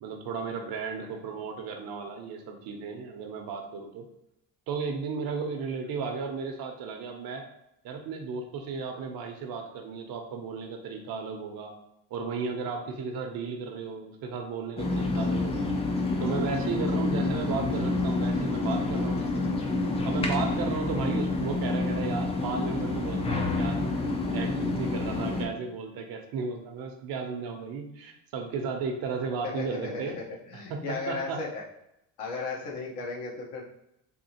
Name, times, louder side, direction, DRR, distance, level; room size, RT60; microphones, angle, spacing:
voice 1, 0.0-4.1 4.7-7.5 7.8-11.7 12.1-15.7 16.2-19.4 20.0-23.9 24.3-30.2 30.7-31.4, right 5 dB, 60° right, 4 dB, 0.7 m, -34 dB
sound 1, 14.8-25.5, left 2 dB, 15° left, 0.3 m, -28 dB
voice 2, 29.4-31.6 32.2-33.7, left 4 dB, 75° left, -3 dB, 1.1 m, -35 dB
3.5 x 2.4 x 2.8 m, 0.83 s
cardioid pair, 125°, 40 cm